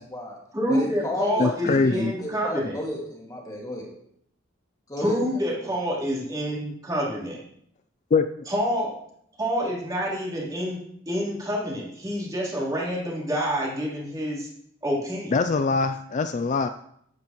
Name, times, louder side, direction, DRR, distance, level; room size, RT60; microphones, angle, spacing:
voice 1, 0.0-0.4 0.7-3.9 4.9-5.7, left 1 dB, 20° left, -1 dB, 2.1 m, -33 dB
voice 2, 0.5-2.8 5.0-7.4 8.5-9.0 9.4-14.5 14.8-15.3, equal, 20° right, -5 dB, 3.5 m, -27 dB
voice 3, 1.4-2.1 8.1-8.3 15.3-16.7, left 4 dB, 35° left, 9 dB, 0.4 m, -22 dB
12.5 x 9.5 x 3.1 m, 0.71 s
head